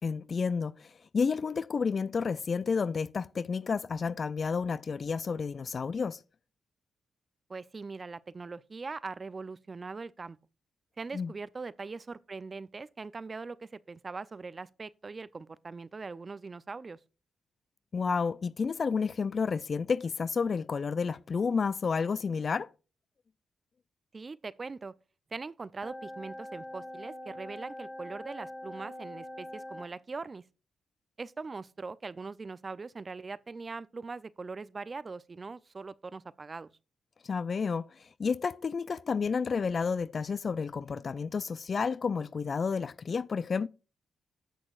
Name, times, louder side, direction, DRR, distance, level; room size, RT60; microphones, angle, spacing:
voice 1, 0.0-6.2 11.1-11.3 17.9-22.7 37.2-43.7, left 5 dB, 50° left, 0.3 m, -31 dB
voice 2, 7.5-10.4 11.0-17.0 24.1-24.9 25.3-30.4 31.2-36.7, right 4 dB, 40° right, 0.5 m, -41 dB
sound 1, 25.8-29.9, left 1 dB, 15° left, 1.4 m, -43 dB
14.5 x 6.2 x 2.4 m
hypercardioid pair, 45°, 0 cm